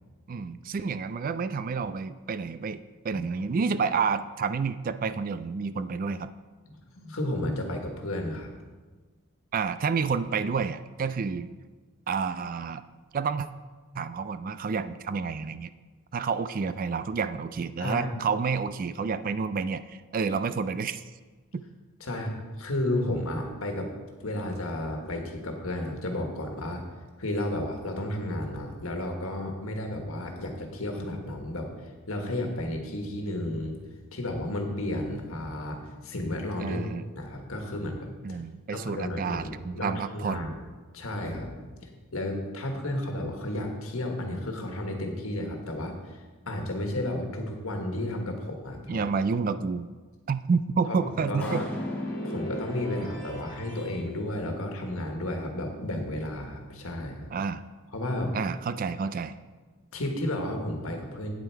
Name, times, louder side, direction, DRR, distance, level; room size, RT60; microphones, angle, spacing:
voice 1, 0.3-6.3 9.5-11.5 12.1-12.8 13.1-13.5 14.0-15.7 16.1-21.0 21.5-21.6 36.6-37.0 38.2-40.5 48.9-49.9 50.3-51.6 57.3-57.6 58.3-59.3, right 5 dB, 40° right, 13 dB, 0.3 m, -29 dB
voice 2, 6.6-8.5 17.8-18.1 22.0-23.9 24.2-26.8 27.2-31.7 32.1-33.7 34.1-36.8 37.1-38.4 38.7-40.5 40.9-41.7 42.1-49.1 50.9-51.7 52.2-57.3 57.9-58.3 59.9-61.4, left 1 dB, 70° left, 3 dB, 1.5 m, -32 dB
sound 1, 51.0-54.0, equal, 35° left, 1.6 m, -37 dB
Clapping, 51.4-53.5, left 1 dB, 5° left, 2.4 m, -45 dB
8.9 x 7.9 x 4.6 m, 1.4 s
head